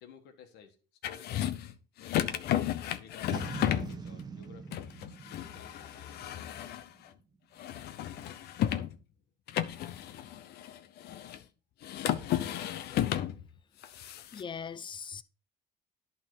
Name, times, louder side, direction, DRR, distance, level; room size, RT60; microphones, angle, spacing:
voice 1, 0.0-0.8 1.0-1.6 2.0-2.5 2.9-4.8 5.2-6.2, left 7 dB, 90° left, 1.4 m, -54 dB
sound 1, 1.0-1.7 2.0-4.0 4.7-7.1 7.6-9.0 9.5-11.4 11.8-13.5 13.8-14.4, left 12 dB, 70° left, 0.7 m, -33 dB
Boom, 3.3-6.6, right 5 dB, 25° right, 0.8 m, -42 dB
voice 2, 14.3-15.2, left 6 dB, 30° left, 0.5 m, -40 dB
11.0 x 3.8 x 4.7 m
cardioid pair, 110°, 17 cm